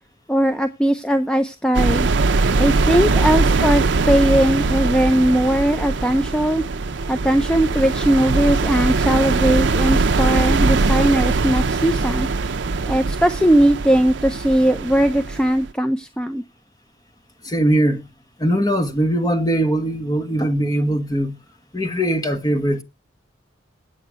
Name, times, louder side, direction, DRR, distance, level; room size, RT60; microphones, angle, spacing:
voice 1, 0.3-2.1 2.6-6.6 7.1-12.3 12.9-16.4, right 1 dB, 5° left, 0.5 m, -19 dB
sound 1, 1.7-15.7, right 3 dB, 65° right, 0.6 m, -21 dB
voice 2, 17.4-18.1 18.4-21.4 21.7-22.8, right 1 dB, 20° left, 1.2 m, -20 dB
8.4 x 8.3 x 6.1 m
head